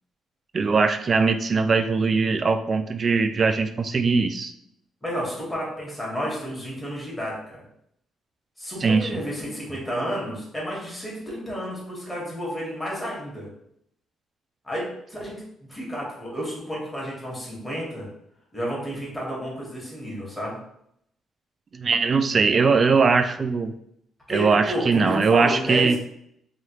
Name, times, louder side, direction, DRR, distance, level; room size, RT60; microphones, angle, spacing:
voice 1, 0.5-4.5 8.8-9.2 21.7-23.7 24.3-26.0, right 4 dB, 40° right, 8 dB, 0.3 m, -21 dB
voice 2, 5.0-7.6 8.6-13.5 14.6-18.1 18.5-20.6 24.3-26.0, equal, 10° left, -5 dB, 1.3 m, -31 dB
3.1 x 2.3 x 2.9 m, 0.73 s
cardioid pair, 90°, 0 cm